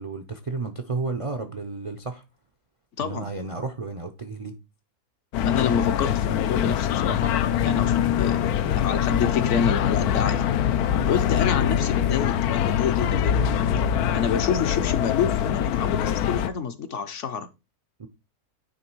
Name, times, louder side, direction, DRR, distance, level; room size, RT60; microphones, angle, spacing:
voice 1, 0.0-2.2 3.0-4.5 10.9-11.1 18.0-18.1, right 3 dB, 45° right, 0.4 m, -32 dB
voice 2, 3.0-3.3 5.4-7.3 7.6-10.4 11.1-13.4 14.1-17.5, left 6 dB, 60° left, 1.0 m, -28 dB
sound 1, 5.3-16.5, left 9 dB, 85° left, 1.1 m, -23 dB
9.6 x 3.2 x 4.5 m
omnidirectional pair, 1.6 m